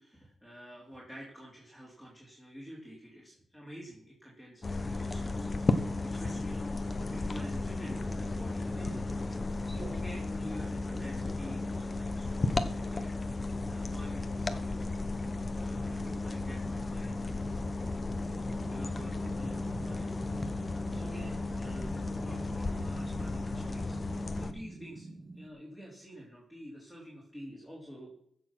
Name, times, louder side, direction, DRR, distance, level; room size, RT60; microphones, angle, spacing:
voice 1, 0.0-15.1 15.6-17.7 18.6-28.1, equal, 5° right, -4 dB, 3.6 m, -49 dB
sound 1, 4.6-24.5, left 2 dB, 25° left, 1.0 m, -34 dB
sound 2, 18.2-25.5, right 2 dB, 30° right, 1.4 m, -47 dB
15.0 x 6.6 x 6.1 m, 0.68 s
cardioid pair, 120°, 0 cm